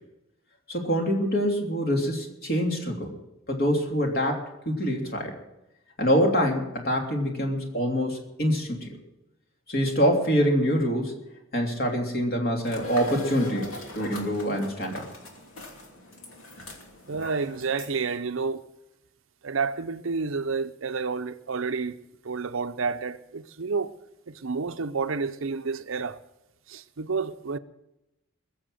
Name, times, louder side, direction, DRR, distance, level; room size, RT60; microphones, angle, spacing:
voice 1, 0.7-3.1 3.5-5.3 6.0-9.0 9.7-11.1 11.5-15.1, equal, 45° left, 3.2 m, -25 dB
sound 1, 12.6-18.2, left 3 dB, 80° left, 2.9 m, -41 dB
voice 2, 17.1-18.6 19.4-22.0 22.2-24.0 24.3-26.2 26.7-27.6, right 4 dB, 70° right, 0.6 m, -30 dB
21.0 x 7.2 x 7.7 m
head